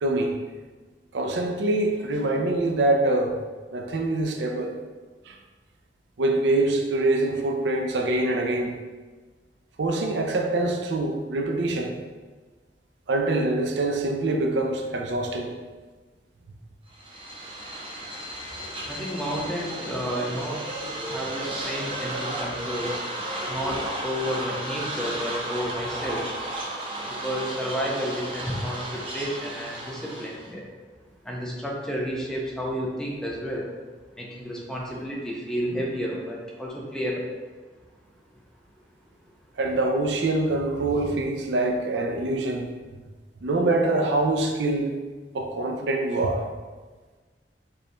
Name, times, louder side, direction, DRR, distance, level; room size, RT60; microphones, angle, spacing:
voice 1, 0.0-0.3 1.1-3.4 3.7-4.7 5.3-5.4 6.2-8.8 9.8-11.9 13.1-15.5 18.6-18.7 39.6-42.7 43.4-44.9 45.3-46.4, right 2 dB, 80° right, 3 dB, 0.5 m, -24 dB
sound 1, 16.9-30.5, right 1 dB, 30° right, 0.7 m, -34 dB
voice 2, 18.9-20.6 21.0-22.9 23.5-26.3 27.0-30.6 31.2-33.7 34.2-37.3, equal, 5° left, -3 dB, 0.6 m, -31 dB
5.0 x 3.0 x 2.2 m, 1.4 s
head